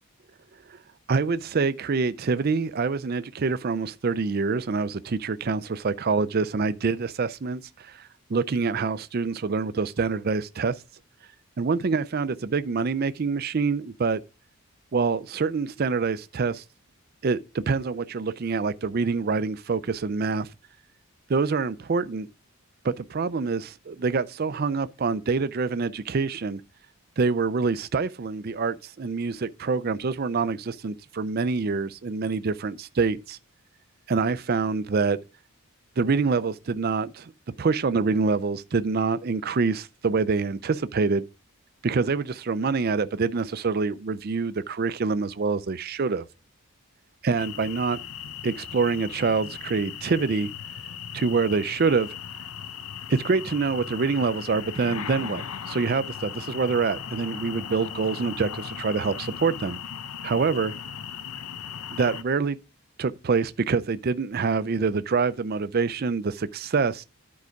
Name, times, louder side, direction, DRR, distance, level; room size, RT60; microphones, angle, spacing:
voice 1, 1.1-8.0 8.3-10.8 11.6-14.2 14.9-16.6 17.2-20.5 21.3-22.3 22.8-26.6 27.2-33.4 34.1-35.2 36.0-37.3 37.6-41.2 41.8-46.2 47.2-48.0 48.4-50.5 51.1-52.1 53.1-59.8 60.2-60.7 61.9-62.6 63.0-67.0, right 4 dB, 45° right, 0.4 m, -26 dB
sound 1, 47.4-62.2, left 8 dB, 80° left, 0.7 m, -37 dB
11.0 x 4.7 x 5.1 m
head